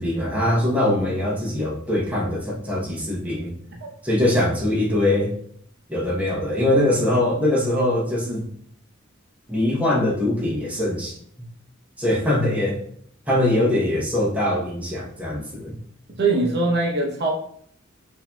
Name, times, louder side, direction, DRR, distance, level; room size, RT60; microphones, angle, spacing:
voice 1, 0.0-3.5 4.0-5.3 5.9-8.5 9.5-11.1 12.0-12.8 13.3-15.8, left 1 dB, 5° right, -5 dB, 0.8 m, -22 dB
voice 2, 16.2-17.3, right 3 dB, 55° right, 0 dB, 0.7 m, -21 dB
5.4 x 2.6 x 2.2 m, 0.63 s
head